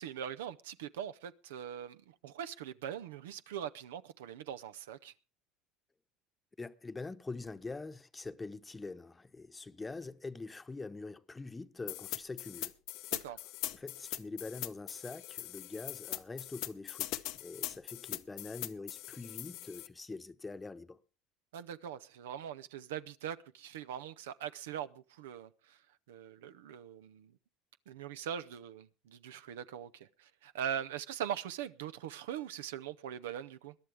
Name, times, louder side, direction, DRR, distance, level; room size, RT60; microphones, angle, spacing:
voice 1, 0.0-5.1 13.1-13.4 21.5-25.8 26.1-27.3 27.9-33.8, right 9 dB, 90° right, 0.6 m, -42 dB
voice 2, 6.6-12.7 13.7-17.1 17.4-21.0, left 3 dB, 20° left, 0.9 m, -44 dB
sound 1, 11.9-19.9, left 16 dB, 70° left, 0.8 m, -41 dB
21.5 x 11.5 x 3.5 m
supercardioid pair, 85°, 0 cm